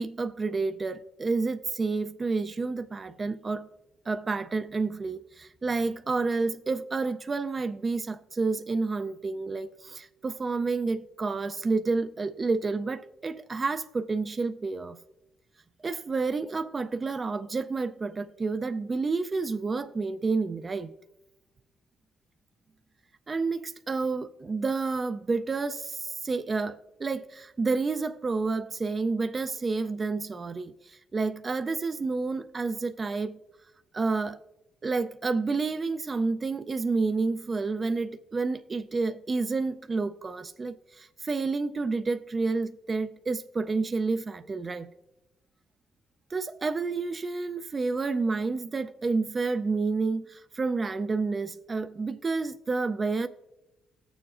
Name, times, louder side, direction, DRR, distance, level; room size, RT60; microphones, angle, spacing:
voice 1, 0.0-3.7 4.1-15.0 15.8-20.9 23.3-33.4 33.9-34.4 34.8-44.9 46.3-53.3, right 4 dB, 30° right, 0.3 m, -29 dB
19.5 x 7.0 x 2.4 m
cardioid pair, 90°, 0 cm